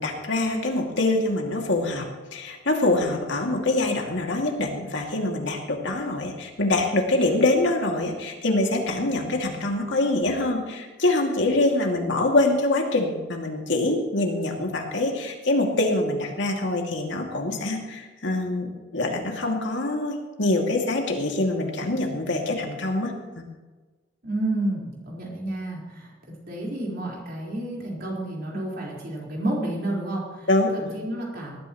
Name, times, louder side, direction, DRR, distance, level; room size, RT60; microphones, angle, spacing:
voice 1, 0.0-23.4 30.5-31.0, left 2 dB, 70° left, 1 dB, 2.3 m, -25 dB
voice 2, 24.2-31.6, right 1 dB, 55° right, -4 dB, 4.4 m, -30 dB
19.5 x 12.5 x 3.1 m, 1.3 s
head